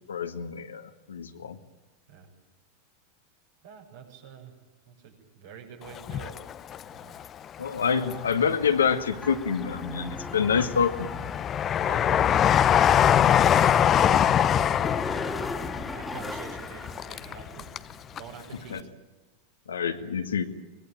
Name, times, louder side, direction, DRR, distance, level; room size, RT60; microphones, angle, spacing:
voice 1, 0.1-1.6 7.6-11.1 18.7-18.8 19.7-20.4, left 6 dB, 75° left, 7 dB, 2.0 m, -27 dB
voice 2, 3.6-4.5 4.9-6.4 6.8-7.2 11.8-18.9, right 7 dB, 60° right, 2 dB, 7.3 m, -45 dB
Train, 6.0-7.2 7.7-8.6 9.1-17.9 18.2-18.3, left 9 dB, 30° left, 0.9 m, -24 dB
sound 1, 9.2-17.9, left 1 dB, 5° left, 2.8 m, -40 dB
24.5 x 21.0 x 9.1 m, 1.1 s
figure-of-eight pair, 90°, 0 cm